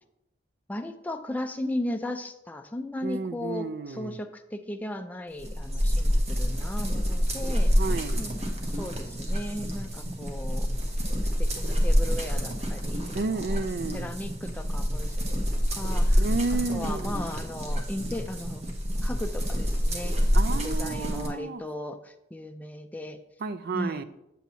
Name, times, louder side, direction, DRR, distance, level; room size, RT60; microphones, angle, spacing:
voice 1, 0.7-7.7 8.2-10.7 11.2-13.6 13.9-16.3 16.7-18.7 19.0-20.2 20.5-23.2 23.7-24.0, left 1 dB, 10° left, 0.4 m, -36 dB
voice 2, 3.0-4.2 7.8-8.2 13.1-14.1 16.2-17.2 20.3-21.6 23.4-24.0, right 4 dB, 60° right, 0.4 m, -31 dB
sound 1, 5.4-21.3, equal, 35° right, 1.1 m, -27 dB
7.6 x 7.0 x 2.8 m
head